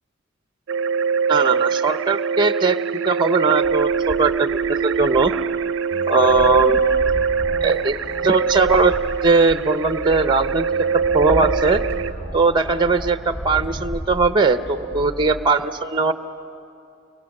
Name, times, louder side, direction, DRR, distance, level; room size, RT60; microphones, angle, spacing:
sound 1, 0.7-12.1, right 6 dB, 65° right, 0.5 m, -23 dB
voice 1, 1.3-2.8 3.0-5.3 6.1-6.9 7.6-8.0 8.2-8.9 9.2-10.7 11.1-11.8 12.3-16.1, right 4 dB, 20° right, 10 dB, 0.6 m, -19 dB
sound 2, 3.6-5.9 6.3-10.6 10.9-14.3, right 1 dB, 30° left, 3.9 m, -34 dB
sound 3, 5.9-15.5, right 1 dB, 70° left, 3.3 m, -39 dB
29.5 x 23.0 x 6.5 m, 2.6 s
head